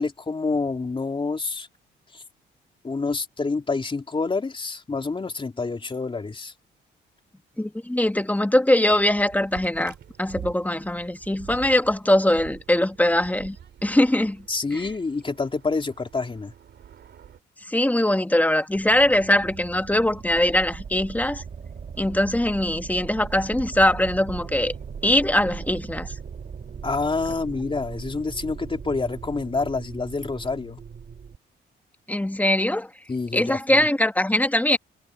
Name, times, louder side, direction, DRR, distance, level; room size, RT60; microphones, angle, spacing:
voice 1, 0.0-1.7 2.1-2.2 2.8-6.5 14.5-16.5 26.8-30.8 33.1-33.8, left 4 dB, 25° left, 3.6 m, -27 dB
voice 2, 7.6-13.5 13.8-14.4 14.7-14.8 17.7-21.4 22.0-24.7 25.0-26.1 32.1-32.9 33.3-34.8, left 1 dB, 10° left, 1.7 m, -22 dB
sound 1, 8.9-17.4, right 9 dB, 60° right, 2.7 m, -45 dB
sound 2, 18.7-31.4, right 6 dB, 45° right, 1.7 m, -38 dB
cardioid pair, 90°, 20 cm